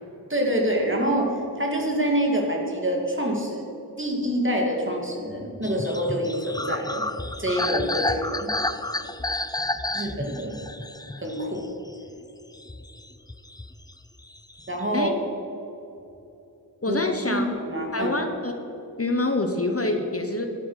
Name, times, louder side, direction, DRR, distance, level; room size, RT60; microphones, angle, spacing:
voice 1, 0.3-3.7 4.0-7.1 7.4-8.5 9.9-10.5 11.2-11.7 14.7-15.3 16.9-17.0 17.3-18.2, equal, 30° right, 0 dB, 2.5 m, -26 dB
sound 1, 5.6-12.1 12.5-13.9 14.2-14.8, left 2 dB, 10° left, 0.5 m, -31 dB
voice 2, 16.8-17.5 17.9-18.5 19.0-20.5, left 2 dB, 35° left, 5 dB, 1.0 m, -26 dB
11.5 x 8.6 x 6.4 m, 2.9 s
wide cardioid pair, 55°, 38 cm